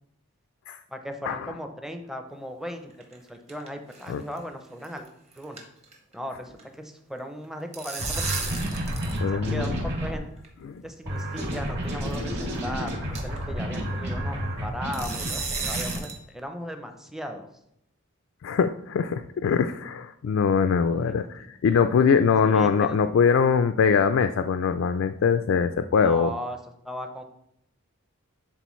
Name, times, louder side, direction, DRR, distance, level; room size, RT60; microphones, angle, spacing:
voice 1, 0.9-5.1 5.4-5.6 6.1-8.4 9.3-10.2 10.8-17.5 20.9-21.3 22.4-23.0 26.0-26.6 26.8-27.2, equal, ahead, 5 dB, 0.5 m, -37 dB
sound 1, 2.9-3.7 3.9-4.1 4.4-4.5 4.8-5.1 5.3-6.6 7.4-9.2 9.5-9.6 10.4-10.5 11.4-11.6 12.1-12.2 12.6-12.7 13.2-13.4 14.9-16.2, right 4 dB, 30° right, 1.1 m, -34 dB
sound 2, 8.0-10.2 11.0-16.0, equal, 55° right, 2.5 m, -30 dB
voice 2, 9.2-9.7 10.6-10.8 18.4-26.3, left 6 dB, 60° left, 8 dB, 0.3 m, -22 dB
11.0 x 3.8 x 3.1 m, 0.76 s
head